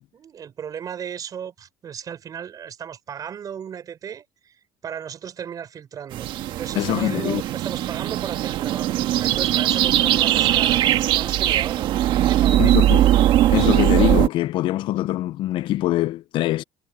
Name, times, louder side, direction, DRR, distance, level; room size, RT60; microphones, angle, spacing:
voice 1, 0.1-4.6 4.8-11.9 12.2-12.9, right 8 dB, 40° right, 6.0 m, -35 dB
sound 1, 6.1-14.3, right 13 dB, 60° right, 1.7 m, -20 dB
voice 2, 6.8-7.4 12.6-13.0 13.5-16.6, left 15 dB, 60° left, 0.8 m, -23 dB
supercardioid pair, 105°, 9 cm